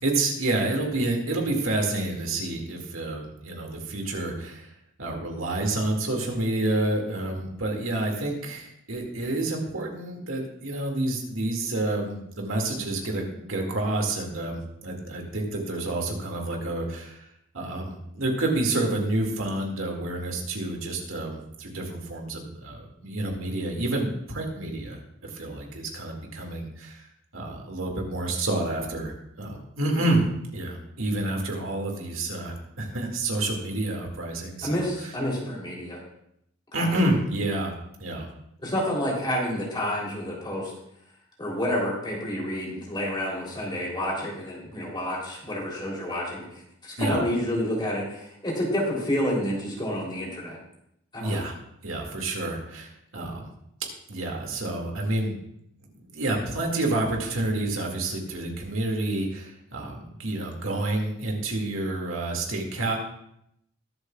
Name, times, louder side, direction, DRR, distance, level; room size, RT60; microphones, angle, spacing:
voice 1, 0.0-4.7 5.0-17.3 17.5-27.1 27.3-30.3 30.5-35.1 36.7-37.7 38.0-38.3 47.0-47.2 51.2-51.5 51.8-53.5 54.1-55.4 55.9-63.0, right 2 dB, 80° right, 1 dB, 2.2 m, -29 dB
voice 2, 34.6-36.0 36.7-36.9 38.6-40.7 41.4-50.6 51.1-51.4, equal, 20° left, -3 dB, 3.3 m, -29 dB
21.5 x 8.0 x 2.4 m, 0.77 s
head